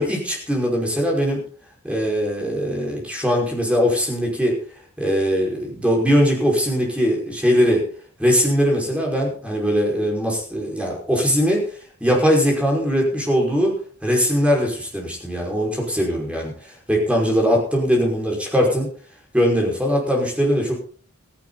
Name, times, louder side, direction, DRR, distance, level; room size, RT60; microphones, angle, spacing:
voice 1, 0.0-1.4 1.8-4.6 5.0-7.8 8.2-11.6 12.0-13.7 14.0-18.9 19.3-20.8, equal, 5° right, -1 dB, 5.4 m, -20 dB
16.0 x 15.5 x 4.2 m, 0.43 s
head